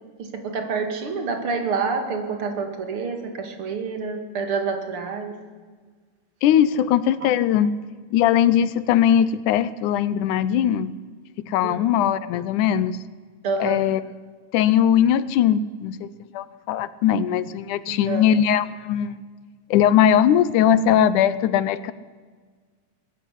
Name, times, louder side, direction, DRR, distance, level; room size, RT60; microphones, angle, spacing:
voice 1, 0.2-5.4 7.2-7.3 11.6-11.8 13.4-13.8 17.9-18.3, right 4 dB, 45° right, 6 dB, 2.9 m, -28 dB
voice 2, 6.4-7.7 8.1-10.9 11.4-13.0 13.6-14.0 14.5-16.1 16.3-19.2 19.7-21.9, left 9 dB, 75° left, 16 dB, 2.1 m, -20 dB
20.5 x 13.5 x 10.0 m, 1.5 s
omnidirectional pair, 3.8 m